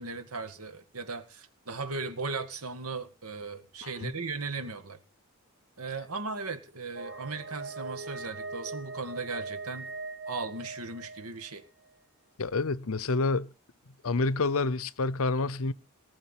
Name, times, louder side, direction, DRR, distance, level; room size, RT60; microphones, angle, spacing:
voice 1, 0.0-5.0 5.8-9.9 10.3-11.6, right 3 dB, 80° right, 2.0 m, -37 dB
voice 2, 3.8-4.1 12.4-13.5 14.0-15.7, left 3 dB, 70° left, 0.7 m, -28 dB
sound 1, 6.9-11.6, right 3 dB, 65° right, 2.2 m, -40 dB
19.0 x 6.4 x 9.2 m
head